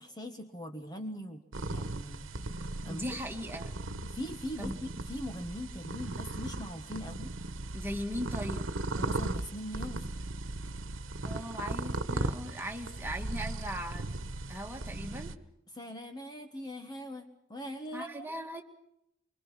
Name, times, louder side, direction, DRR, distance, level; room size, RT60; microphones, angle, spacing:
voice 1, 0.0-1.4 1.7-2.5 2.8-3.2 4.0-7.3 8.9-10.1 15.7-18.3, equal, 20° left, 5 dB, 1.5 m, -41 dB
sound 1, 1.5-15.4, right 2 dB, 80° right, 1.3 m, -37 dB
voice 2, 2.9-3.8 4.6-4.8 7.7-8.7 11.2-14.1 14.5-15.3 17.9-18.6, equal, 10° right, 2 dB, 2.4 m, -38 dB
25.0 x 23.5 x 6.2 m, 0.78 s
head